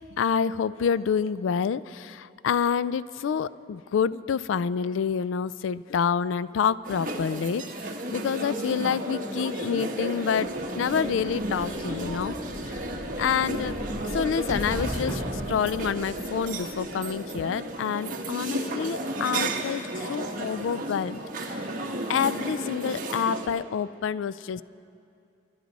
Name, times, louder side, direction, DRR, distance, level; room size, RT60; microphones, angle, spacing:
voice 1, 0.0-7.6 8.1-10.5 10.7-12.3 12.7-12.8 13.2-13.8 14.1-21.2 22.1-24.6, left 7 dB, 90° left, 17 dB, 0.3 m, -28 dB
sound 1, 6.8-23.5, right 1 dB, 45° right, 1.2 m, -33 dB
sound 2, 10.4-17.1, equal, 15° left, 1.1 m, -38 dB
25.5 x 11.5 x 4.1 m, 2.5 s
head